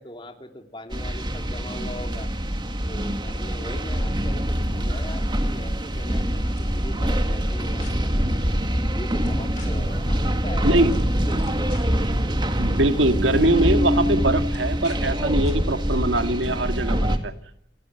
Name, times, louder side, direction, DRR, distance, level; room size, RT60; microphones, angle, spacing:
voice 1, 0.0-2.3 2.8-8.3 8.9-11.7, left 1 dB, 25° left, 4 dB, 3.1 m, -40 dB
sound 1, 0.9-17.2, equal, 25° right, 2.0 m, -24 dB
sound 2, 5.7-6.2 6.6-6.7 7.4-7.9 9.2-9.7 10.7-10.9 11.2-12.0 13.0-13.1 13.4-13.7 14.5-15.0 15.4-15.6, left 7 dB, 40° left, 5.8 m, -47 dB
voice 2, 10.6-10.9 12.6-17.3, right 1 dB, 85° right, 7 dB, 2.2 m, -22 dB
30.0 x 17.5 x 8.0 m, 0.76 s
head